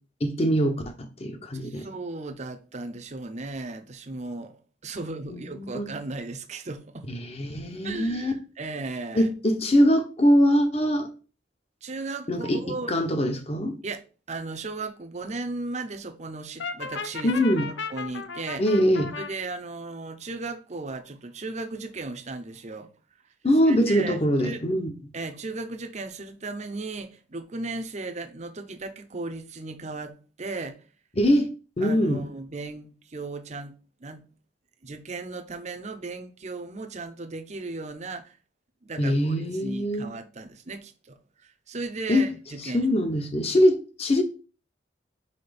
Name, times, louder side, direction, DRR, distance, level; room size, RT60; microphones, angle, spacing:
voice 1, 0.2-0.9 1.2-1.9 5.3-5.9 7.1-8.4 9.1-11.1 12.3-13.8 17.2-17.7 18.6-19.1 23.4-24.9 31.2-31.5 31.8-32.2 39.0-40.1 42.1-42.3 42.7-44.2, equal, 35° left, 1.0 m, -23 dB
voice 2, 1.6-7.1 7.8-9.3 11.8-12.9 13.8-14.0 14.3-17.3 17.9-18.6 19.2-22.9 23.6-24.6 25.1-30.8 31.8-33.7 34.0-34.2 34.8-38.4 38.8-42.9, right 3 dB, 40° right, 0.7 m, -36 dB
Brass instrument, 16.6-19.3, left 5 dB, 70° left, 0.6 m, -35 dB
5.1 x 4.2 x 5.1 m
head